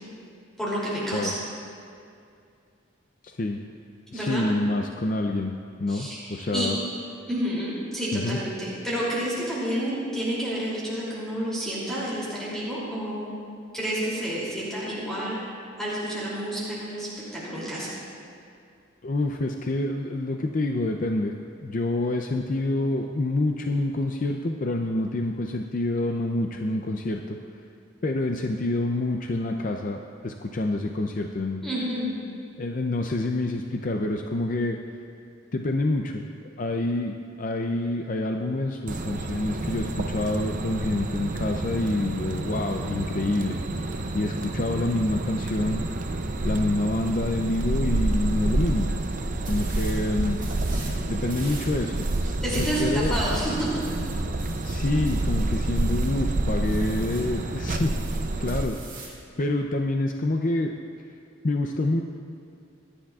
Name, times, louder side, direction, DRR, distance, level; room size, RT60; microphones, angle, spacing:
voice 1, 0.6-1.3 4.1-4.5 5.9-6.7 7.3-13.3 13.7-15.4 15.8-17.1 17.3-17.9 31.6-32.1 52.4-53.8, equal, ahead, -9 dB, 2.8 m, -29 dB
voice 2, 3.2-3.6 4.1-5.5 5.8-6.8 8.1-8.4 19.0-21.3 21.6-27.4 28.0-31.6 32.6-34.8 35.5-36.2 36.6-43.6 44.1-45.8 46.4-48.9 49.4-50.4 51.1-52.1 52.6-53.2 54.6-58.0 58.4-59.1 59.4-60.7 61.4-62.0, left 2 dB, 40° left, 3 dB, 0.5 m, -27 dB
sound 1, 38.9-58.6, right 2 dB, 40° right, 0.6 m, -28 dB
sound 2, 49.4-50.0 50.4-51.0 51.3-56.2 56.6-57.3 57.7-59.2, right 3 dB, 25° right, 2.6 m, -44 dB
26.0 x 10.0 x 2.4 m, 2.4 s
head